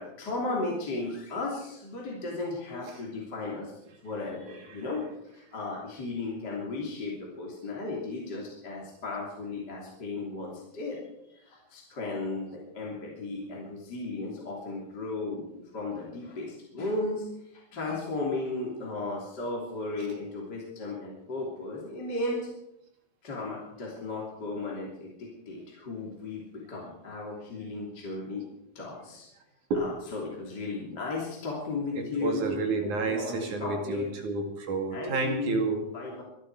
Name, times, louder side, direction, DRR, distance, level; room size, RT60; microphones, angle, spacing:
voice 1, 0.0-3.7 4.0-5.0 5.3-17.2 17.5-22.5 23.2-26.4 26.7-28.5 28.8-29.3 29.7-34.1 34.9-35.6 35.9-36.2, left 3 dB, 30° left, -3 dB, 3.5 m, -35 dB
voice 2, 32.0-35.9, right 3 dB, 65° right, 3 dB, 3.7 m, -30 dB
24.0 x 12.0 x 4.8 m, 0.82 s
omnidirectional pair, 3.9 m